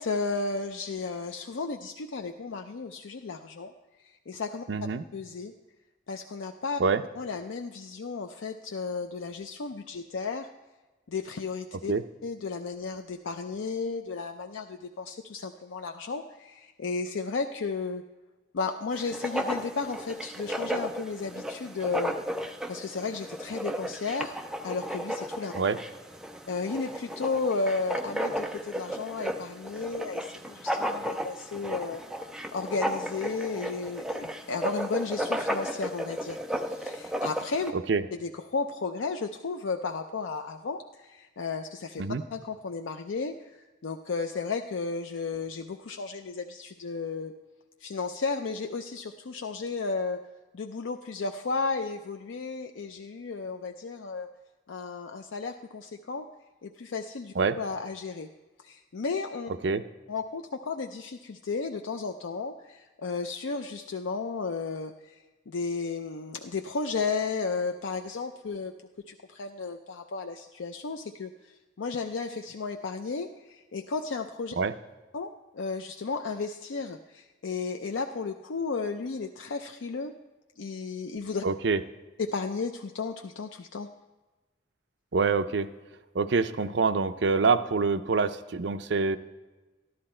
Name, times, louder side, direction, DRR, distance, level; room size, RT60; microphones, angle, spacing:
voice 1, 0.0-3.7 4.0-4.6 5.1-5.5 6.1-6.8 7.2-10.5 11.1-11.9 12.2-18.0 18.5-22.2 22.7-24.4 24.6-25.5 26.5-32.0 32.5-37.7 38.1-42.0 42.3-47.3 47.8-50.2 50.5-54.3 54.7-56.3 56.6-58.3 58.6-59.5 60.1-68.7 69.1-74.6 75.1-80.1 80.6-81.5 82.2-83.9, left 4 dB, 90° left, 5 dB, 0.5 m, -33 dB
voice 2, 4.7-5.0 6.8-7.0 11.9-12.0 25.5-25.8 37.9-38.0 42.0-42.2 57.4-57.6 59.6-59.8 74.6-74.7 81.4-81.8 85.1-85.7 86.1-89.2, right 4 dB, 70° right, 11 dB, 0.5 m, -25 dB
Writing, 18.9-37.7, equal, 5° right, 0.4 m, -34 dB
13.5 x 11.0 x 4.3 m, 1.2 s
head